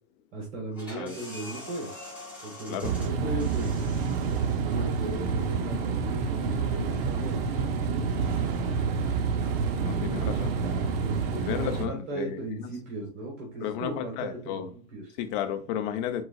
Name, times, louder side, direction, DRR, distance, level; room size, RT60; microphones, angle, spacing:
voice 1, 0.3-1.9 2.4-3.7 4.6-8.1 9.8-11.4 11.8-15.1, right 2 dB, 60° right, 1.7 m, -37 dB
sound 1, 0.7-6.2, equal, 5° right, 2.3 m, -45 dB
sound 2, 2.8-11.9, right 5 dB, 45° right, 0.8 m, -28 dB
voice 2, 9.8-10.5 11.5-12.7 13.6-14.7 15.2-16.2, left 10 dB, 35° left, 0.7 m, -33 dB
4.8 x 3.8 x 2.4 m
hypercardioid pair, 125°, 41 cm